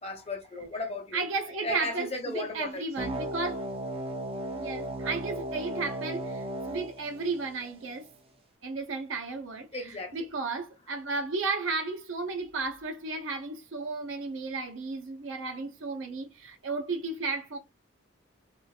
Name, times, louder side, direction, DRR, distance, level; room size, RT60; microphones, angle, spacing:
voice 1, 0.0-1.2 1.6-2.9 9.7-10.2, left 2 dB, 30° left, 0.7 m, -35 dB
voice 2, 1.1-3.6 4.5-8.1 8.6-17.6, right 3 dB, 75° right, 0.7 m, -34 dB
sound 1, 3.0-8.0, right 1 dB, 30° right, 0.4 m, -36 dB
3.0 x 2.4 x 2.3 m
head